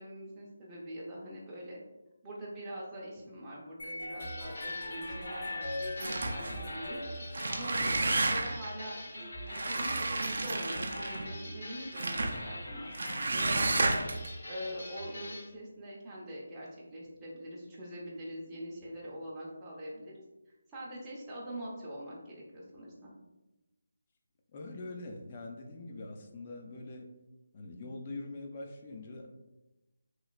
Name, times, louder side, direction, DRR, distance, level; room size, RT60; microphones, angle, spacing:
voice 1, 0.0-1.8 2.2-7.0 7.5-12.9 13.3-20.2 20.7-23.1, equal, 10° right, -7 dB, 0.6 m, -43 dB
sound 1, 3.8-7.9, left 2 dB, 45° left, 1.0 m, -41 dB
sound 2, 4.2-15.5, equal, 70° left, 1.2 m, -43 dB
sound 3, 6.0-6.6 7.2-8.7 9.5-11.3 11.9-12.4 12.9-14.3, right 2 dB, 60° right, 0.4 m, -31 dB
voice 2, 24.5-27.1 27.5-29.4, left 2 dB, 30° left, 2 dB, 0.4 m, -43 dB
3.0 x 2.8 x 2.4 m, 1.0 s
figure-of-eight pair, 165°, 0 cm